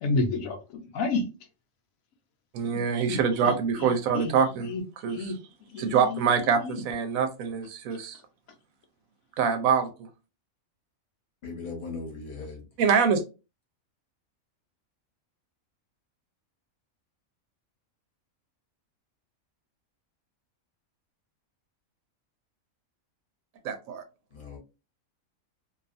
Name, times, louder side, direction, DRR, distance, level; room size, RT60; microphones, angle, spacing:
voice 1, 0.0-1.3 3.1-3.2 4.1-4.3 4.7-4.8 5.1-5.3 5.7-6.2, left 3 dB, 75° left, 1.0 m, -29 dB
voice 2, 2.5-5.4 5.8-8.2 9.4-10.1 12.8-13.2 23.6-24.0, right 6 dB, 75° right, 1.0 m, -25 dB
voice 3, 11.4-12.6 24.3-24.6, left 4 dB, 40° left, 0.9 m, -38 dB
2.6 x 2.3 x 2.4 m
omnidirectional pair, 1.5 m